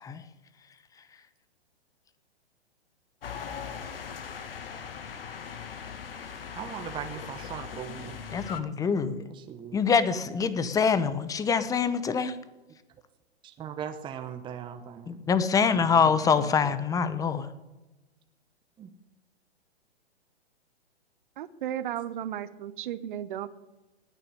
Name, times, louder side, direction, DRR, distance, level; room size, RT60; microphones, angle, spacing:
sound 1, 3.2-8.6, left 7 dB, 60° left, 1.7 m, -39 dB
voice 1, 6.5-8.2 9.3-9.8 13.4-15.2 15.7-16.7 18.8-18.9, right 8 dB, 15° right, 7 dB, 1.0 m, -40 dB
voice 2, 8.3-9.2 9.7-12.3 15.1-17.5, left 6 dB, 10° left, 14 dB, 0.8 m, -25 dB
voice 3, 21.4-23.5, right 11 dB, 50° right, 14 dB, 1.1 m, -34 dB
18.5 x 6.9 x 9.9 m, 1.1 s
figure-of-eight pair, 115°, 32 cm